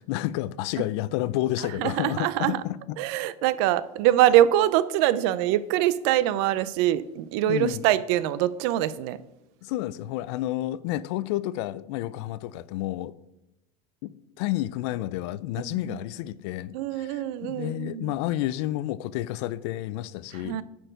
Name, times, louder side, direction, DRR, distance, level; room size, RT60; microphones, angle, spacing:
voice 1, 0.0-3.0 7.5-7.9 9.6-13.1 14.0-20.6, left 15 dB, 55° left, 0.4 m, -30 dB
voice 2, 1.8-2.6 3.0-9.2 15.9-16.0 16.7-18.1 20.4-20.6, right 13 dB, 55° right, 0.4 m, -23 dB
10.0 x 4.5 x 5.1 m
supercardioid pair, 165°, 17 cm